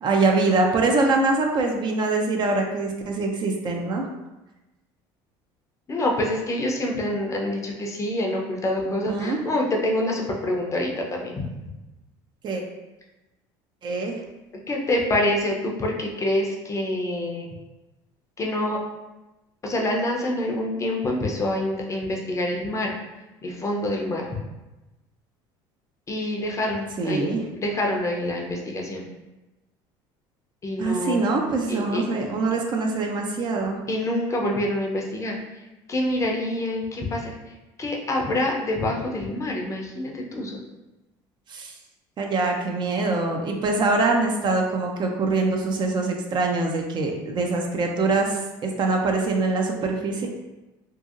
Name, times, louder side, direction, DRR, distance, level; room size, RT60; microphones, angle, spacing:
voice 1, 0.0-4.1 8.9-9.4 12.4-12.6 13.8-14.2 27.0-27.4 30.8-33.8 41.5-41.7 42.2-50.3, right 3 dB, 40° right, 2 dB, 0.5 m, -24 dB
voice 2, 5.9-11.5 14.7-17.5 18.4-18.8 19.6-22.9 23.4-24.2 26.1-29.1 30.6-31.2 31.7-32.0 33.9-35.3 35.9-37.3 37.8-40.6, left 1 dB, 25° left, 0 dB, 0.5 m, -26 dB
2.8 x 2.6 x 2.4 m, 1.0 s
supercardioid pair, 90°, 11 cm